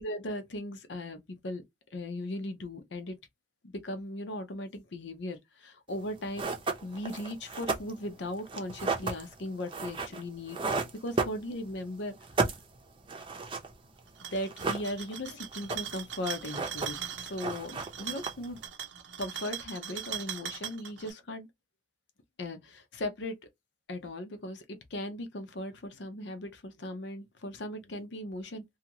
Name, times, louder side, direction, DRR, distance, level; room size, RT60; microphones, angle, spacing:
voice 1, 0.0-1.6 1.9-3.2 3.6-6.5 6.8-10.6 11.0-12.5 14.2-18.6 19.2-21.5 22.4-23.4 23.9-28.6, left 1 dB, 70° left, 0.7 m, -38 dB
sound 1, 6.0-6.1 6.4-11.8 12.1-14.0 14.3-15.2 15.5-16.1 16.4-17.1 17.4-18.6, right 3 dB, 30° right, 0.6 m, -33 dB
sound 2, 14.1-21.1, right 9 dB, 80° right, 0.7 m, -40 dB
2.8 x 2.4 x 2.9 m
head